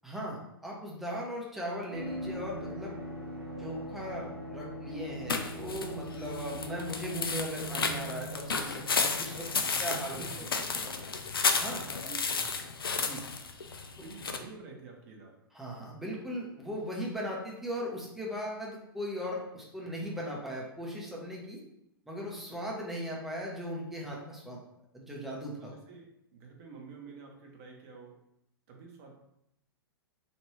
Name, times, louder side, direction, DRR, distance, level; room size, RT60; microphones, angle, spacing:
voice 1, 0.0-2.9 3.6-9.5 9.8-10.5 11.6-11.9 13.0-13.2 15.5-21.6 22.1-24.6 24.9-25.7, equal, ahead, -4 dB, 0.7 m, -38 dB
Monsters approach, 1.9-10.4 10.7-10.8, equal, 85° right, 0.7 m, -42 dB
sound 1, 5.3-14.4, left 5 dB, 70° left, 0.4 m, -33 dB
voice 2, 9.6-10.9 11.5-11.6 12.0-12.6 14.0-15.4 25.6-28.2 28.7-29.1, right 4 dB, 40° right, 0 dB, 0.8 m, -49 dB
3.1 x 2.6 x 2.9 m, 0.79 s
figure-of-eight pair, 105°, 12 cm